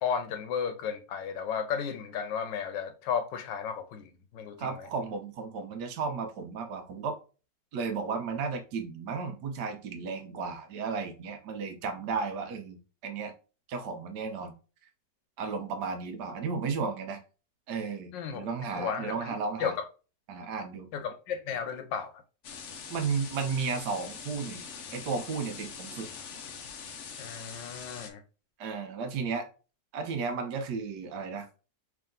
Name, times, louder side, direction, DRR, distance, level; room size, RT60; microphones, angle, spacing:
voice 1, 0.0-4.9 18.1-18.5 18.8-19.8 20.9-22.1 27.2-28.2, left 7 dB, 85° left, 1.4 m, -34 dB
voice 2, 4.6-7.2 7.7-13.3 13.7-14.5 15.4-17.2 17.7-19.7 20.3-20.9 22.9-24.6 24.9-26.1 28.6-29.5 29.9-31.6, right 5 dB, 70° right, 1.2 m, -34 dB
sound 1, 22.4-28.1, left 6 dB, 65° left, 0.7 m, -43 dB
3.5 x 3.0 x 3.6 m
omnidirectional pair, 1.9 m